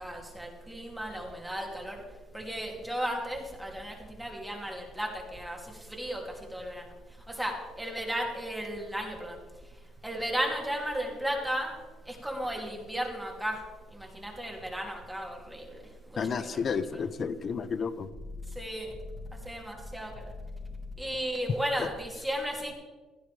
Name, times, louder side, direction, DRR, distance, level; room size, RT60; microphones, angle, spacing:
voice 1, 0.0-2.0 2.3-5.6 5.9-6.2 6.5-6.8 7.3-9.4 10.0-11.7 12.1-13.6 13.9-15.8 16.2-17.0 18.6-18.9 19.4-20.2 21.0-22.7, equal, 5° right, -1 dB, 2.8 m, -34 dB
voice 2, 16.2-18.1 21.8-21.9, left 6 dB, 35° left, 14 dB, 0.7 m, -31 dB
16.5 x 15.0 x 3.4 m, 1.3 s
cardioid pair, 135°, 0 cm